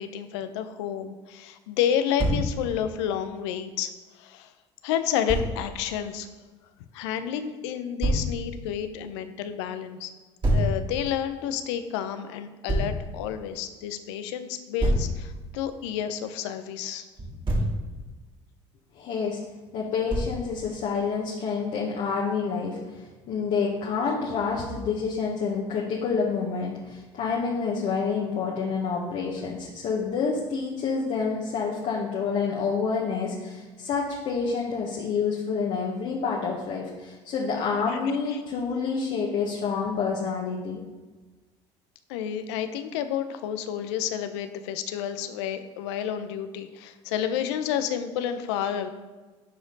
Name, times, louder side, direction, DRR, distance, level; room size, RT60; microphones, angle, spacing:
voice 1, 0.0-3.9 4.2-4.5 4.8-6.3 6.9-10.1 10.5-17.0 37.9-38.0 38.3-38.4 42.1-48.9, left 9 dB, 75° left, 9 dB, 0.7 m, -30 dB
Thump thud, 2.2-2.5 5.3-5.5 8.0-8.3 10.4-10.7 12.7-13.0 14.8-15.1 17.2-17.8 20.1-20.4, right 1 dB, 35° right, 2.9 m, -24 dB
voice 2, 19.0-19.4 19.7-40.8, left 5 dB, 55° left, -3 dB, 1.4 m, -28 dB
11.0 x 5.0 x 4.0 m, 1.3 s
hypercardioid pair, 65°, 15 cm